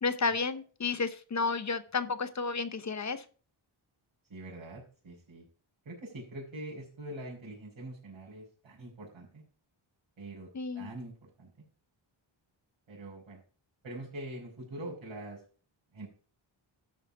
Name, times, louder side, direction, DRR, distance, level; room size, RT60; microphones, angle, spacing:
voice 1, 0.0-3.2 10.5-10.9, left 4 dB, 35° left, 11 dB, 0.8 m, -32 dB
voice 2, 4.3-5.5 5.9-9.4 10.2-10.5 10.7-11.5 12.9-13.4 13.8-15.4 15.9-16.1, right 1 dB, 75° right, -9 dB, 5.3 m, -44 dB
12.5 x 5.8 x 4.9 m, 0.39 s
wide cardioid pair, 160°, 48 cm